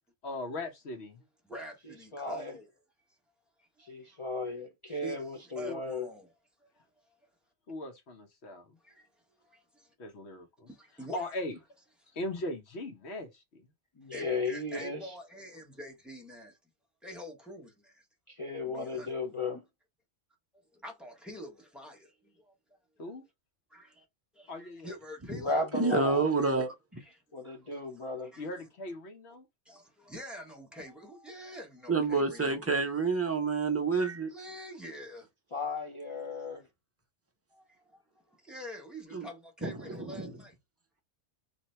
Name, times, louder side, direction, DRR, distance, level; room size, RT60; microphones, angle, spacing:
voice 1, 0.2-1.2 5.6-5.8 7.7-8.8 10.0-10.7 11.1-11.6 12.1-13.7 23.0-23.2 24.5-24.9 25.9-26.6 28.4-29.5, left 1 dB, 70° left, 1.1 m, -39 dB
voice 2, 1.4-2.7 3.6-3.7 4.0-4.2 4.9-6.3 6.7-6.8 8.8-9.1 9.4-9.9 10.7-11.3 14.1-16.6 17.0-18.0 18.6-19.1 20.7-22.5 23.7-24.0 24.3-25.6 27.0-27.7 28.3-28.6 29.6-32.8 34.3-35.3 36.3-36.4 37.5-38.0 38.3-40.5, equal, ahead, 0.9 m, -46 dB
voice 3, 2.1-2.5 3.8-6.1 14.0-15.1 18.3-19.6 25.4-26.2 27.3-28.3 35.5-36.6, left 3 dB, 35° left, 0.5 m, -35 dB
voice 4, 25.7-27.0 31.9-34.3 39.1-39.3 39.6-40.3, right 4 dB, 20° right, 0.5 m, -29 dB
2.9 x 2.7 x 4.2 m
omnidirectional pair, 1.2 m